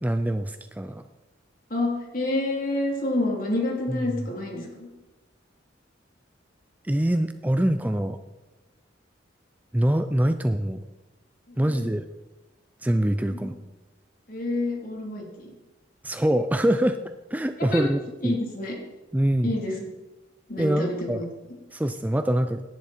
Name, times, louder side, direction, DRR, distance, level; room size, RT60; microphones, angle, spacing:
voice 1, 0.0-1.0 3.9-4.0 6.9-8.2 9.7-10.8 11.6-12.1 12.8-13.6 16.0-17.0 17.3-18.4 19.1-19.5 20.6-21.2 21.7-22.6, right 1 dB, 10° right, 9 dB, 0.4 m, -24 dB
voice 2, 1.7-4.9 11.5-11.9 13.2-13.5 14.3-15.5 17.7-17.9 18.2-18.7 19.4-19.8 20.5-21.3, left 2 dB, 50° left, -1 dB, 3.4 m, -28 dB
18.0 x 11.0 x 4.4 m, 1.1 s
head